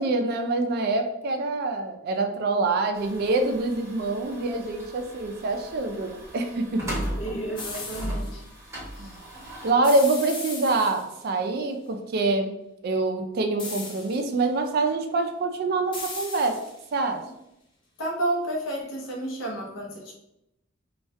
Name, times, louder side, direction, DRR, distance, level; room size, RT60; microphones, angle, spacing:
voice 1, 0.0-7.0 9.0-9.2 9.6-12.6 12.8-16.6 16.9-17.2, right 3 dB, 50° right, 5 dB, 0.3 m, -25 dB
sound 1, 2.9-9.7, equal, 15° right, 0.8 m, -37 dB
voice 2, 7.2-8.4 9.0-9.1 18.0-20.1, right 1 dB, 70° left, -1 dB, 0.6 m, -31 dB
sound 2, 7.6-8.3 9.8-11.3 13.6-14.4 15.9-17.0, left 3 dB, 25° left, 0.4 m, -38 dB
2.2 x 2.1 x 2.6 m, 0.85 s
head